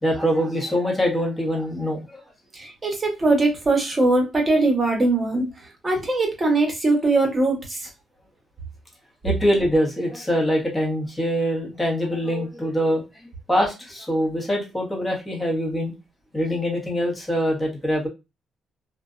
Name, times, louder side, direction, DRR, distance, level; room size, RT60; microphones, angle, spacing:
voice 1, 0.0-2.2 9.2-13.0 13.5-15.9 16.3-18.1, equal, 15° left, -1 dB, 1.0 m, -23 dB
voice 2, 2.5-5.5 5.8-7.9, right 2 dB, 25° right, 2 dB, 1.0 m, -21 dB
2.5 x 2.2 x 2.4 m, 0.25 s
cardioid pair, 90°, 0 cm